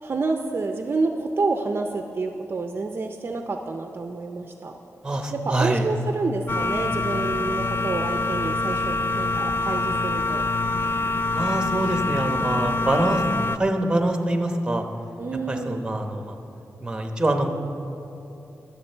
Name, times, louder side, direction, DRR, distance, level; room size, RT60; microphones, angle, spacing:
voice 1, 0.0-4.7 5.3-10.5 15.2-15.8, right 3 dB, 40° right, 4 dB, 0.5 m, -28 dB
voice 2, 5.0-5.8 11.3-13.2 13.5-14.8 15.5-16.4 16.8-17.5, right 1 dB, 15° right, 4 dB, 0.9 m, -24 dB
sound 1, 6.5-13.6, left 2 dB, 40° left, 0.3 m, -25 dB
21.0 x 7.3 x 4.4 m, 3.0 s
wide cardioid pair, 165°, 6 cm